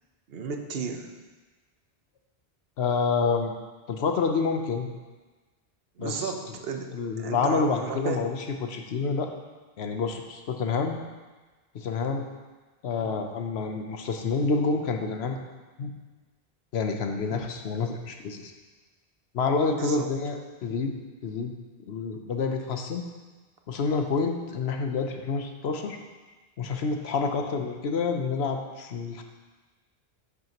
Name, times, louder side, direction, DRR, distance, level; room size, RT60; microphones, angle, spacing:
voice 1, 0.3-1.2 6.0-6.9 7.2-8.2 19.7-20.1, right 5 dB, 70° right, 5 dB, 1.0 m, -33 dB
voice 2, 2.8-3.5 3.9-4.9 6.0-6.3 6.9-9.3 9.8-11.0 11.7-12.3 12.8-15.4 15.8-15.9 16.7-18.5 19.3-20.9 21.2-21.5 21.8-23.0 23.7-26.0 26.6-29.2, left 4 dB, 85° left, 4 dB, 1.0 m, -28 dB
10.5 x 6.2 x 2.9 m, 1.3 s
omnidirectional pair, 1.1 m